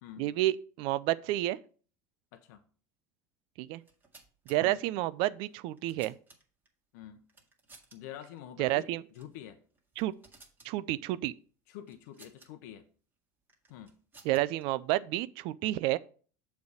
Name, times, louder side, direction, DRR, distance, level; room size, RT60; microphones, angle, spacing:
voice 1, 0.2-1.6 3.6-3.8 4.5-6.2 8.6-9.0 10.0-10.1 10.6-11.3 14.2-16.0, right 16 dB, 65° right, 0.4 m, -30 dB
voice 2, 2.3-2.6 4.6-4.9 5.8-5.9 6.9-7.2 7.9-8.9 9.1-9.6 11.7-12.8 13.7-14.0, left 11 dB, 75° left, 0.7 m, -47 dB
sound 1, 3.8-4.6 5.4-6.7 7.3-8.0 8.3-8.4 9.1-9.4 9.7-10.7 11.9-12.5 13.5-14.6, right 3 dB, 20° right, 2.0 m, -58 dB
7.0 x 3.5 x 6.3 m
hypercardioid pair, 90°, 10 cm